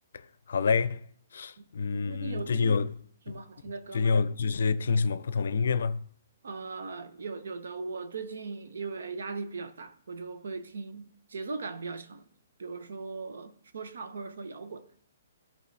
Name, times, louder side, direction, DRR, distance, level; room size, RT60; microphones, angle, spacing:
voice 1, 0.5-1.0 1.3-2.9 3.3-3.4 3.9-6.0, left 5 dB, 70° left, 0.5 m, -27 dB
voice 2, 1.9-2.8 3.3-4.1 6.4-12.3 12.6-14.9, right 4 dB, 75° right, 0.9 m, -39 dB
13.0 x 4.5 x 3.3 m
hypercardioid pair, 135°, 0 cm